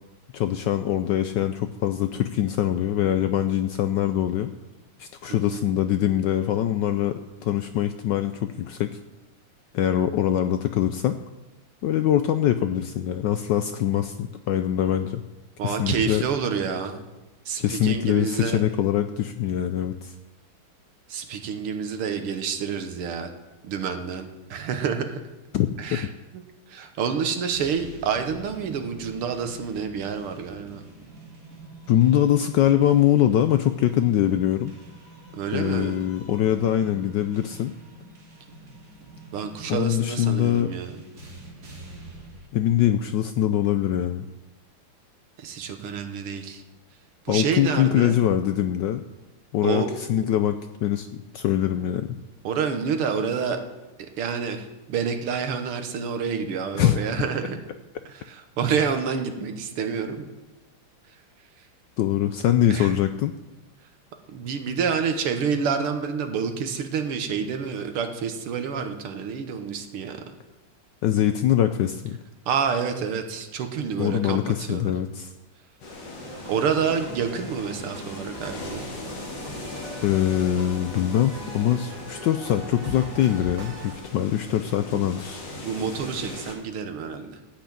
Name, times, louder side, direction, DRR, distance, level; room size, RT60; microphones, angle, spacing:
voice 1, 0.3-4.5 5.0-8.9 9.7-11.1 11.8-15.2 15.6-16.2 17.6-20.1 25.5-26.0 31.9-34.7 35.5-37.7 39.7-40.7 42.5-44.2 47.3-49.0 49.5-52.2 56.7-57.0 62.0-63.3 71.0-72.2 74.0-75.3 80.0-85.4, left 11 dB, 75° left, 9 dB, 1.0 m, -23 dB
voice 2, 5.3-5.6 15.6-17.0 17.5-18.6 21.1-23.3 23.6-25.2 25.8-26.1 26.3-26.4 26.7-30.8 35.3-36.0 39.3-41.0 45.4-46.6 47.3-48.2 49.6-49.9 52.4-53.6 54.0-57.6 58.1-60.3 61.6-61.7 62.7-62.9 64.3-70.2 72.5-74.9 76.5-78.8 84.8-85.2 85.6-87.4, right 6 dB, 85° right, 6 dB, 2.1 m, -28 dB
sound 1, 27.5-42.5, right 2 dB, 45° right, 2.6 m, -46 dB
sound 2, 75.8-86.6, left 2 dB, 55° left, 2.5 m, -39 dB
sound 3, 76.2-84.0, equal, 60° right, 3.4 m, -41 dB
13.5 x 6.0 x 8.6 m, 1.1 s
omnidirectional pair, 2.4 m